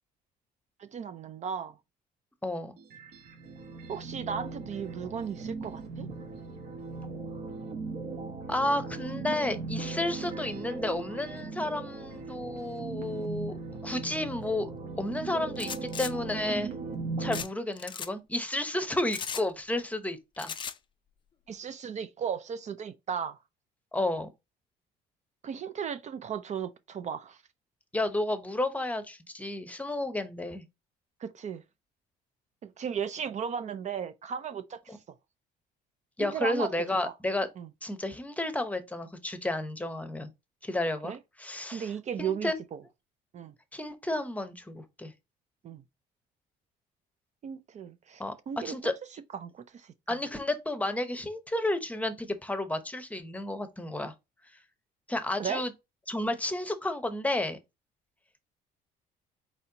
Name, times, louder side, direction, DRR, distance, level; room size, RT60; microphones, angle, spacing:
voice 1, 0.8-1.8 3.9-6.1 21.5-23.4 25.4-27.4 31.2-31.6 32.6-35.0 36.2-36.7 37.0-37.1 37.6-37.7 41.0-41.2 41.7-42.8 43.3-43.5 45.6-45.8 47.4-48.9 49.3-49.9 55.4-55.6, right 7 dB, 45° right, 0.5 m, -36 dB
voice 2, 2.4-2.8 8.5-13.6 13.8-14.7 15.0-16.7 17.2-20.5 23.9-24.3 27.9-30.6 34.9-35.0 36.2-37.5 37.8-40.3 40.6-41.1 41.4-41.9 42.2-42.6 43.7-45.1 48.2-48.3 48.6-48.9 50.1-54.1 55.1-55.7 56.1-57.6, left 1 dB, 10° left, 0.8 m, -31 dB
sound 1, 2.8-17.4, right 4 dB, 60° right, 1.5 m, -38 dB
sound 2, 15.6-16.1 17.3-17.5 17.8-18.1 19.1-19.5 20.4-20.8, left 7 dB, 30° left, 0.4 m, -36 dB
4.4 x 4.2 x 2.8 m
cardioid pair, 110°, 17 cm